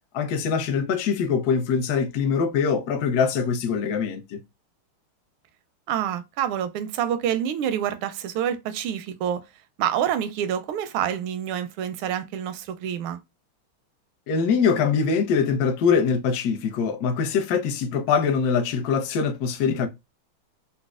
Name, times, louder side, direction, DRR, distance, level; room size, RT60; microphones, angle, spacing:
voice 1, 0.1-4.4 14.3-19.9, left 6 dB, 75° left, 0.9 m, -23 dB
voice 2, 5.9-9.4 9.8-13.2, right 9 dB, 85° right, 1.5 m, -27 dB
4.1 x 2.1 x 2.3 m
omnidirectional pair, 2.3 m